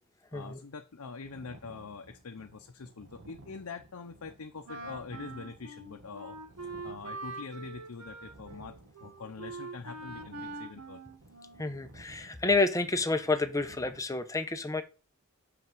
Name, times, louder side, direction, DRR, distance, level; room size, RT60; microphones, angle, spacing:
voice 1, 0.3-11.0, left 4 dB, 75° left, 0.7 m, -44 dB
sound 1, 1.2-14.0, right 2 dB, 55° right, 1.3 m, -56 dB
Wind instrument woodwind instrument, 4.6-11.9, right 3 dB, 75° right, 1.3 m, -44 dB
voice 2, 11.6-14.8, left 3 dB, 15° left, 0.7 m, -29 dB
5.8 x 5.7 x 6.0 m
head